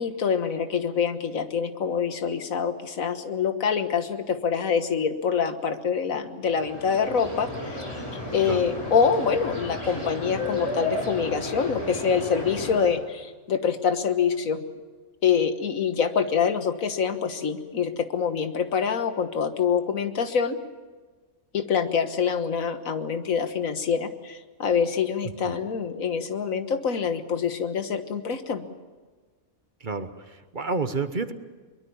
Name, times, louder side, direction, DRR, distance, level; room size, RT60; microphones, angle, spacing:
voice 1, 0.0-7.8 8.3-14.6 15.2-20.6 21.5-28.7, left 6 dB, 90° left, 9 dB, 1.8 m, -25 dB
sound 1, 6.4-12.9, left 1 dB, 20° left, 6.4 m, -33 dB
voice 2, 29.8-31.3, right 4 dB, 40° right, 10 dB, 1.2 m, -30 dB
23.0 x 22.0 x 7.1 m, 1.4 s
omnidirectional pair, 1.4 m